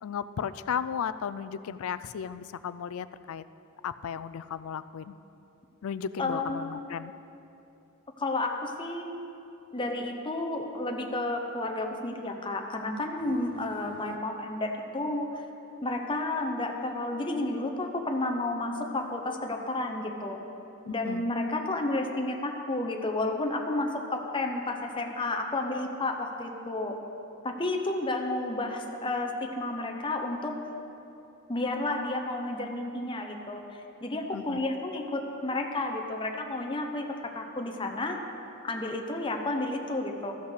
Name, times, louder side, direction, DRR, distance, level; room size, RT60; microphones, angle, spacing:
voice 1, 0.0-3.4 3.8-5.2 5.8-7.1 20.9-21.2 34.3-34.6, left 7 dB, 65° left, 14 dB, 0.4 m, -35 dB
voice 2, 6.2-6.9 8.2-9.2 9.7-15.5 15.8-20.4 20.9-27.0 27.4-30.6 31.5-38.2 38.6-40.4, left 2 dB, 20° left, 3 dB, 0.8 m, -31 dB
14.0 x 5.8 x 6.5 m, 2.8 s
head